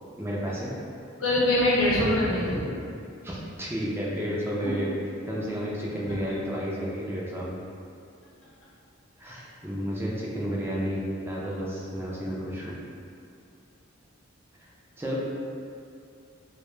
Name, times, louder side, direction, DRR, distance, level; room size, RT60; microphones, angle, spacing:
voice 1, 0.2-0.8 3.2-4.9 5.3-7.6 9.2-12.8 14.6-14.7 15.0-15.2, equal, 10° right, -5 dB, 0.4 m, -31 dB
voice 2, 1.2-2.7 4.6-4.7, left 1 dB, 80° left, -8 dB, 0.8 m, -23 dB
2.3 x 2.1 x 3.0 m, 2.5 s
head